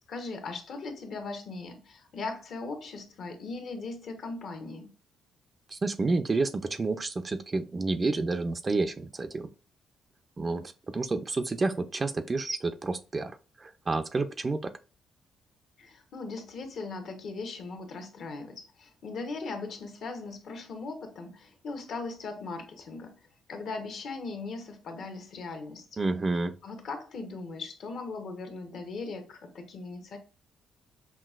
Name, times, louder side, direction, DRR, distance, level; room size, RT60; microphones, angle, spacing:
voice 1, 0.0-4.9 15.8-26.0 26.6-30.2, left 3 dB, 65° left, 0.9 m, -39 dB
voice 2, 5.7-9.5 10.4-13.3 13.6-14.6 26.0-26.5, right 3 dB, 30° right, 0.4 m, -29 dB
5.8 x 2.4 x 2.4 m
cardioid pair, 90°, 0 cm